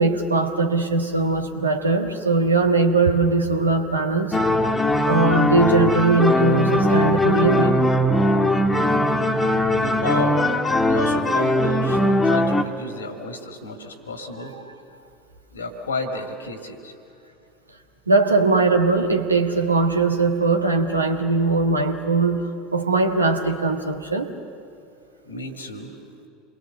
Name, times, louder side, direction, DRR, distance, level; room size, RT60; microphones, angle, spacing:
voice 1, 0.0-4.4 5.0-7.8 18.1-22.4 22.7-24.3, right 3 dB, 85° right, 5 dB, 1.5 m, -20 dB
sound 1, 4.3-12.6, left 1 dB, 15° left, 1.6 m, -20 dB
voice 2, 9.8-14.5 15.5-16.9 25.2-25.9, left 2 dB, 80° left, 5 dB, 2.3 m, -31 dB
28.0 x 22.0 x 6.8 m, 2.6 s
figure-of-eight pair, 75°, 0 cm